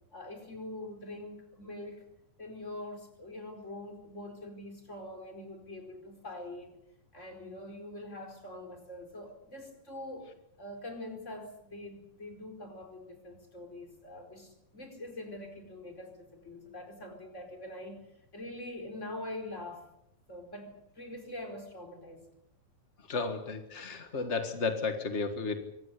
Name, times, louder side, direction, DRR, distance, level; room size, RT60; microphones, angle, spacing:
voice 1, 0.1-2.0 2.4-6.7 7.1-18.1 18.3-19.8 20.3-22.2, left 1 dB, 20° left, 4 dB, 4.6 m, -44 dB
voice 2, 23.1-25.6, left 4 dB, 55° left, 7 dB, 0.7 m, -33 dB
25.0 x 18.0 x 8.2 m, 0.80 s
omnidirectional pair, 4.1 m